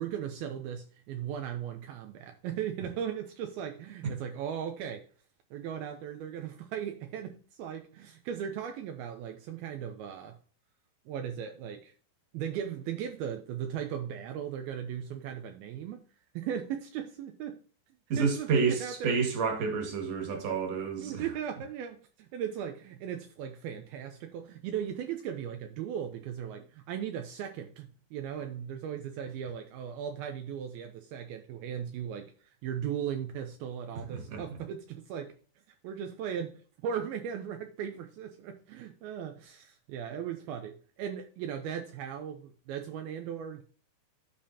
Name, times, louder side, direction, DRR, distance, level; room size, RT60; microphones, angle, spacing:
voice 1, 0.0-5.1 5.5-10.4 11.1-11.9 12.3-16.0 16.3-17.6 18.2-19.2 21.0-35.3 35.8-43.6, right 8 dB, 85° right, 2.2 m, -37 dB
voice 2, 18.1-21.2 34.1-34.4, right 5 dB, 45° right, 2.4 m, -29 dB
14.5 x 5.1 x 2.8 m
omnidirectional pair, 5.0 m